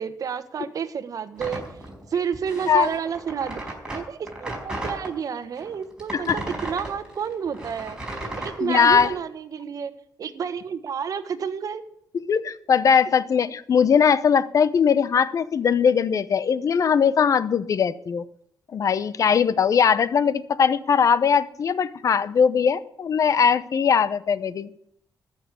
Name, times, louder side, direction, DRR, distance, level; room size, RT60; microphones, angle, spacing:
voice 1, 0.0-1.6 2.1-3.6 3.9-8.0 8.4-9.9 10.2-11.8, right 7 dB, 60° right, 11 dB, 1.2 m, -30 dB
sound 1, 1.4-5.1 5.6-9.1, right 1 dB, 10° right, 4.6 m, -35 dB
voice 2, 8.6-9.1 12.3-18.2 18.7-24.7, left 6 dB, 55° left, 17 dB, 0.7 m, -20 dB
14.0 x 6.5 x 9.8 m, 0.70 s
cardioid pair, 100°, 7 cm